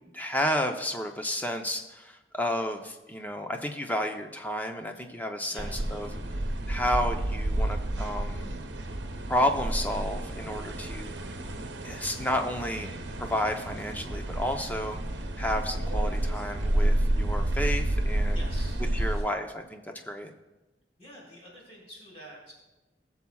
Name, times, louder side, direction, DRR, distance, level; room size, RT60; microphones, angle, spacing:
voice 1, 0.1-6.1 6.7-8.6 9.3-11.1 11.8-12.9 13.2-15.0 15.4-18.4 18.9-20.3, equal, 10° left, 4 dB, 0.7 m, -31 dB
voice 2, 5.5-6.2 9.4-9.5 18.3-19.4 21.0-22.5, equal, 35° left, -4 dB, 3.5 m, -48 dB
sound 1, 5.6-19.2, right 1 dB, 80° right, 0.8 m, -30 dB
19.5 x 7.1 x 2.3 m, 1.1 s
head